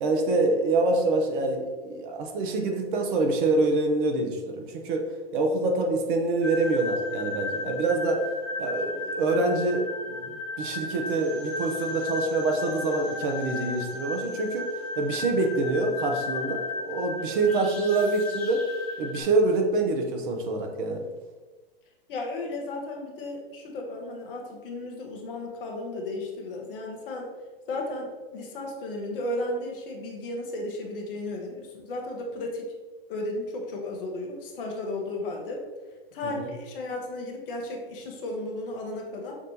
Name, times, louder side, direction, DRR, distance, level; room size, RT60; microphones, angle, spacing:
voice 1, 0.0-5.1 5.3-8.2 8.6-14.7 15.0-18.7 19.0-21.0 36.2-36.5, right 2 dB, 55° right, 3 dB, 0.8 m, -26 dB
sound 1, 6.4-19.2, left 3 dB, ahead, 1.2 m, -35 dB
voice 2, 22.1-27.3 27.7-32.6 33.1-35.6 36.1-39.4, left 2 dB, 60° left, 1 dB, 1.0 m, -34 dB
6.0 x 2.5 x 2.8 m, 1.3 s
hypercardioid pair, 105°, 31 cm